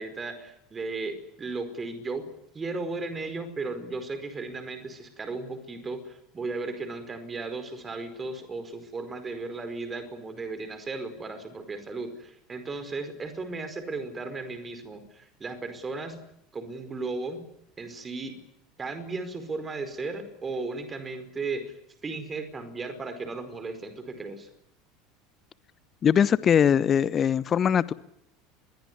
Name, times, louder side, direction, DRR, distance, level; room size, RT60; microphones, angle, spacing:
voice 1, 0.0-2.3 2.5-16.2 16.5-17.4 17.8-18.4 18.8-21.8 22.0-24.5, right 3 dB, 20° right, 4.9 m, -35 dB
voice 2, 26.0-27.9, left 8 dB, 30° left, 1.0 m, -21 dB
26.5 x 22.0 x 9.8 m
figure-of-eight pair, 75°, 0 cm